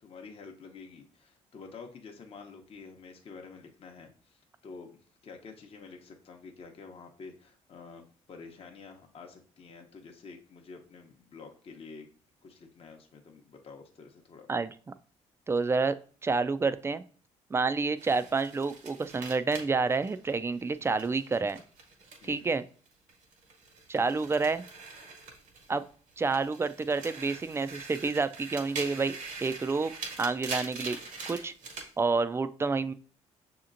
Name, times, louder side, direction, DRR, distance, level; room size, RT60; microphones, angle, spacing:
voice 1, 0.0-12.1 12.4-14.5 22.2-22.5, left 4 dB, 45° left, 3 dB, 0.8 m, -49 dB
voice 2, 15.5-17.0 17.5-21.6 22.2-22.6 23.9-24.6 25.7-25.8 26.2-29.9 30.2-31.0 31.3-31.5 32.0-32.9, right 4 dB, 20° right, 13 dB, 0.3 m, -29 dB
sound 1, 18.0-22.6 22.9-25.8 26.2-31.9, right 4 dB, 80° right, 1.3 m, -43 dB
6.3 x 2.9 x 2.5 m, 0.41 s
cardioid pair, 80°, 13 cm